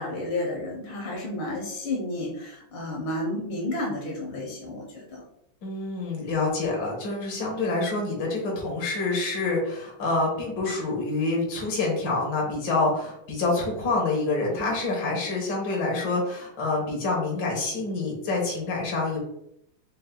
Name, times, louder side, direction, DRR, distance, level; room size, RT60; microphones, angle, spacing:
voice 1, 0.0-5.2, left 1 dB, 85° left, -2 dB, 1.8 m, -31 dB
voice 2, 5.6-19.2, left 3 dB, 65° left, -2 dB, 1.9 m, -27 dB
5.2 x 3.4 x 2.2 m, 0.75 s
omnidirectional pair, 2.2 m